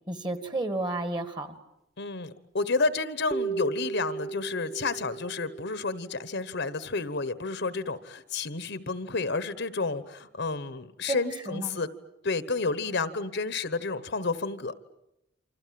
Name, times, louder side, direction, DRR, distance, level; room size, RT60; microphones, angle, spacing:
voice 1, 0.1-1.5 11.0-11.8, right 2 dB, 20° right, 9 dB, 1.8 m, -32 dB
voice 2, 2.0-11.9 12.2-14.7, left 3 dB, 55° left, 14 dB, 1.1 m, -30 dB
sound 1, 3.3-7.0, right 5 dB, ahead, 1.3 m, -36 dB
28.5 x 26.0 x 7.7 m, 0.84 s
head